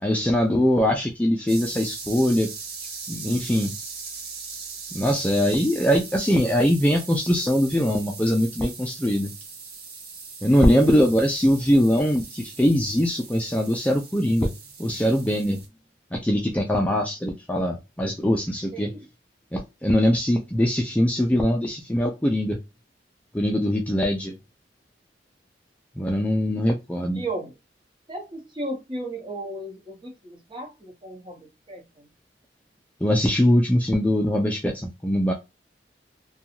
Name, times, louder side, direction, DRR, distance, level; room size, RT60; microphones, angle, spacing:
voice 1, 0.0-2.5 3.1-3.7 4.9-9.3 10.4-14.5 14.8-15.6 16.1-18.9 19.5-22.6 23.3-24.4 26.0-27.2 33.0-35.3, equal, 10° left, 0 dB, 0.4 m, -22 dB
sound 1, 1.5-15.7, right 5 dB, 60° right, 0.8 m, -40 dB
voice 2, 18.7-19.0 19.9-20.1 27.1-27.5 28.1-32.1, right 1 dB, 30° right, 1 dB, 1.0 m, -35 dB
2.6 x 2.3 x 2.8 m, 0.24 s
head